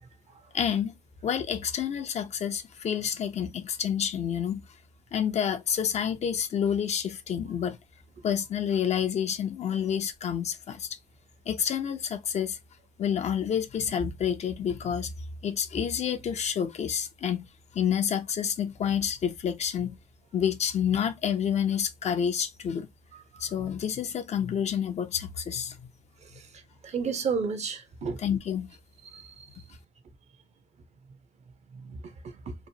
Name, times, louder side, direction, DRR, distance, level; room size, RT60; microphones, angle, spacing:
voice 1, 0.5-1.0 1.2-4.7 5.1-7.8 8.2-10.9 11.5-12.6 13.0-15.1 15.4-17.4 17.7-20.0 20.3-22.9 23.4-25.8 28.2-28.7, left 8 dB, 50° left, 0.5 m, -28 dB
voice 2, 26.8-28.2 29.1-29.5 31.7-32.5, right 5 dB, 50° right, 0.6 m, -32 dB
2.9 x 2.0 x 2.6 m
supercardioid pair, 70°, 14 cm